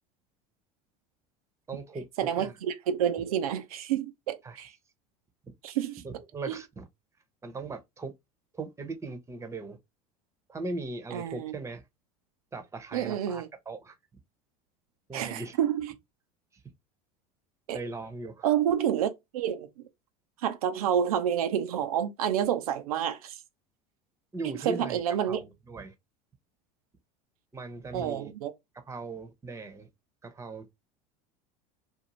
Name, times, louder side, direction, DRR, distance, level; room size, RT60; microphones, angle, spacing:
voice 1, 1.7-2.6 4.4-4.6 6.0-6.9 7.4-8.1 8.5-9.8 10.5-11.8 12.5-14.0 15.1-15.6 16.5-16.6 17.7-18.5 24.3-25.9 27.5-28.3 28.9-29.9 30.2-30.7, right 3 dB, 15° right, 0.7 m, -39 dB
voice 2, 2.2-4.7 5.6-6.0 11.1-11.5 12.9-13.5 15.1-15.9 17.7-17.8 18.4-19.9 20.4-23.4 24.7-25.4 27.9-28.5, right 9 dB, 85° right, 0.4 m, -29 dB
2.6 x 2.3 x 2.9 m
hypercardioid pair, 90°, 18 cm